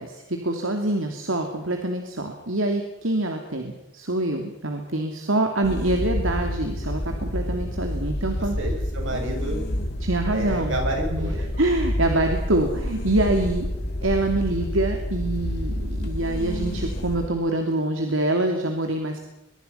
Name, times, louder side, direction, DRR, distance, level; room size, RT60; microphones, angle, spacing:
voice 1, 0.0-8.6 10.0-10.8 11.1-13.7 14.0-19.2, right 2 dB, 85° right, 4 dB, 2.8 m, -25 dB
sound 1, 5.6-17.3, left 1 dB, 55° left, 2.5 m, -28 dB
voice 2, 8.6-9.6 10.3-11.5, right 1 dB, 65° right, 2 dB, 7.9 m, -29 dB
23.5 x 22.5 x 5.7 m, 0.95 s
head